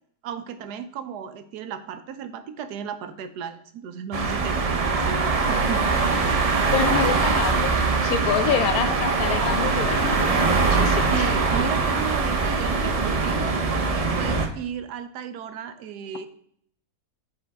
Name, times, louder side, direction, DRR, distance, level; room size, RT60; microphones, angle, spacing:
voice 1, 0.2-5.9 11.1-16.3, right 7 dB, 85° right, 10 dB, 1.2 m, -34 dB
sound 1, 4.1-14.5, right 4 dB, 60° right, 0.3 m, -22 dB
voice 2, 6.7-11.3, left 9 dB, 70° left, 11 dB, 1.0 m, -27 dB
7.9 x 4.0 x 3.4 m, 0.64 s
omnidirectional pair, 1.7 m